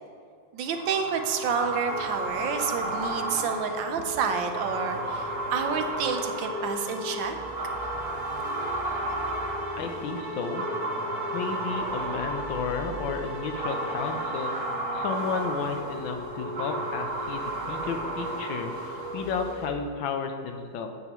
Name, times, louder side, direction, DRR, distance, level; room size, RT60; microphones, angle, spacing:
voice 1, 0.5-7.4, right 6 dB, 75° right, 6 dB, 1.4 m, -29 dB
sound 1, 0.7-19.6, right 2 dB, 55° right, 1.3 m, -34 dB
sound 2, 1.9-19.7, left 1 dB, 15° left, 0.9 m, -39 dB
sound 3, 3.8-15.0, right 2 dB, 35° right, 0.9 m, -43 dB
voice 2, 9.8-10.7 11.3-14.6 14.9-20.9, left 5 dB, 75° left, 5 dB, 1.4 m, -32 dB
9.3 x 8.2 x 3.0 m, 2.3 s
omnidirectional pair, 2.2 m